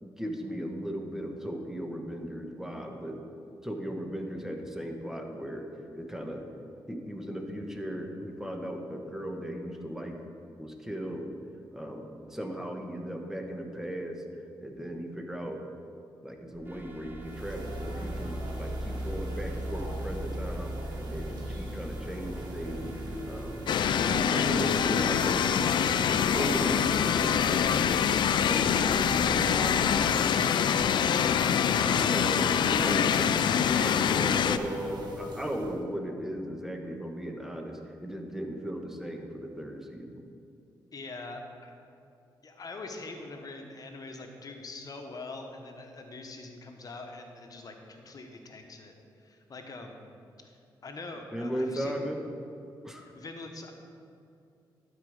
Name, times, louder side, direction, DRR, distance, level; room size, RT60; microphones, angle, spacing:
voice 1, 0.0-3.2 3.6-5.6 5.9-6.5 6.9-10.2 10.6-11.3 11.7-14.2 14.6-15.6 16.2-22.8 23.2-23.7 24.1-28.0 28.5-30.0 31.4-40.3 51.3-52.2 52.8-53.1, equal, 5° right, 3 dB, 1.2 m, -37 dB
sound 1, 16.5-30.2, right 1 dB, 25° right, 0.9 m, -40 dB
sound 2, 17.2-35.8, right 1 dB, 55° right, 1.7 m, -43 dB
sound 3, 23.7-34.6, left 8 dB, 65° left, 0.4 m, -25 dB
voice 2, 40.9-41.7 42.4-50.0 50.4-50.6 50.8-51.9 53.0-53.7, left 3 dB, 50° left, 4 dB, 1.1 m, -43 dB
12.0 x 4.9 x 4.9 m, 2.5 s
cardioid pair, 65°, 8 cm